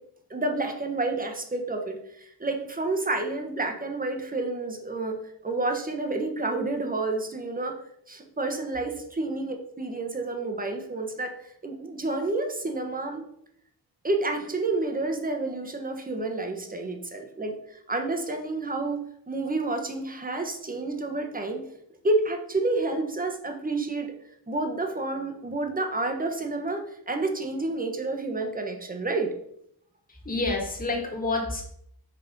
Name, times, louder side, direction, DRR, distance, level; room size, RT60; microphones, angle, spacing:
voice 1, 0.3-5.2 5.4-7.8 8.1-11.3 11.6-13.3 14.0-21.6 22.0-24.1 24.5-29.3, right 2 dB, 20° right, 4 dB, 1.1 m, -29 dB
voice 2, 30.1-31.6, left 2 dB, 20° left, -1 dB, 1.8 m, -28 dB
5.9 x 3.3 x 5.1 m, 0.72 s
cardioid pair, 80°, 40 cm